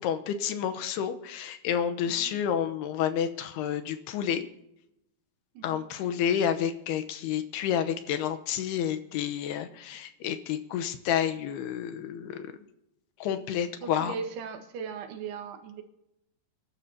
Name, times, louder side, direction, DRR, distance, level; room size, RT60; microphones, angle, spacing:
voice 1, 0.0-4.4 5.6-12.5 13.2-14.1, left 9 dB, 80° left, 8 dB, 2.9 m, -30 dB
voice 2, 2.0-2.4 5.6-5.9 13.8-15.8, right 6 dB, 80° right, 6 dB, 3.4 m, -38 dB
29.0 x 12.0 x 2.8 m, 0.82 s
omnidirectional pair, 4.7 m